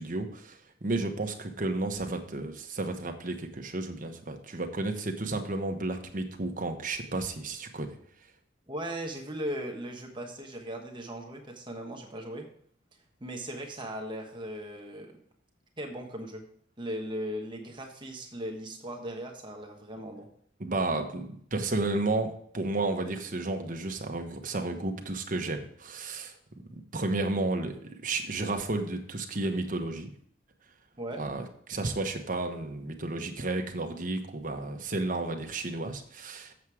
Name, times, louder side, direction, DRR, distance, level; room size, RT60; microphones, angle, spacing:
voice 1, 0.0-7.9 20.6-26.3 26.7-30.1 31.2-36.5, right 2 dB, 45° right, 4 dB, 1.1 m, -32 dB
voice 2, 8.7-12.5 13.2-15.2 15.8-16.4 16.8-20.3 31.0-31.2, equal, 25° right, 2 dB, 1.3 m, -38 dB
7.4 x 7.3 x 4.8 m, 0.62 s
head